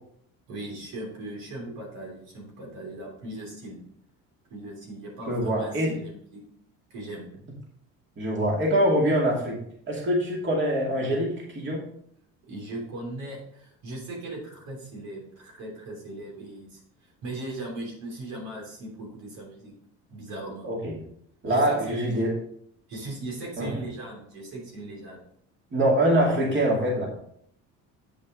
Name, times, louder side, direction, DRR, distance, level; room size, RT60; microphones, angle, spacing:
voice 1, 0.5-3.8 4.5-6.4 6.9-7.2 12.5-19.7 20.1-20.7 21.5-22.3 22.9-25.2, right 2 dB, 75° right, -2 dB, 3.2 m, -38 dB
voice 2, 5.3-5.9 8.2-9.6 9.9-11.8 20.6-21.0 21.4-22.3 23.6-23.8 25.7-27.1, right 1 dB, 35° right, -2 dB, 2.3 m, -24 dB
8.2 x 5.2 x 3.7 m, 0.68 s
cardioid pair, 105°, 35 cm